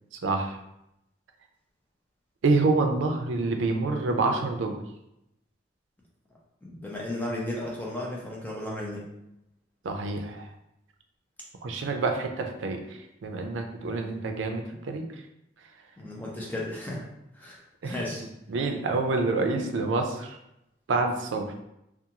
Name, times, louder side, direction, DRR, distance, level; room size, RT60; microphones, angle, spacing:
voice 1, 0.2-0.6 2.4-4.8 9.8-10.5 11.6-12.8 13.2-15.0 17.8-18.0 18.5-20.4 20.9-21.5, right 3 dB, 90° right, 5 dB, 0.4 m, -27 dB
voice 2, 6.6-9.0 14.0-14.1 16.0-17.0 17.4-17.6 17.8-18.2, left 1 dB, 10° left, -4 dB, 0.5 m, -34 dB
2.5 x 2.3 x 2.8 m, 0.84 s
head